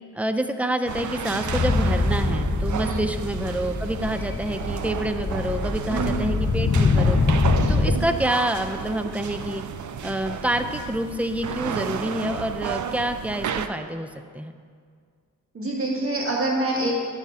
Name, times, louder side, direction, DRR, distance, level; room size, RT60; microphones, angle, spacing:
voice 1, 0.1-7.2 7.7-9.6 10.0-14.1 14.3-14.5, right 1 dB, 5° right, 8 dB, 0.4 m, -27 dB
sound 1, 0.9-13.7, right 8 dB, 60° right, 0.5 m, -32 dB
sound 2, 1.4-8.0, left 4 dB, 35° left, 0.6 m, -24 dB
voice 2, 5.9-6.3 15.5-16.9, right 2 dB, 40° right, -2 dB, 1.9 m, -26 dB
10.5 x 5.6 x 4.8 m, 2.1 s
wide cardioid pair, 110°, 33 cm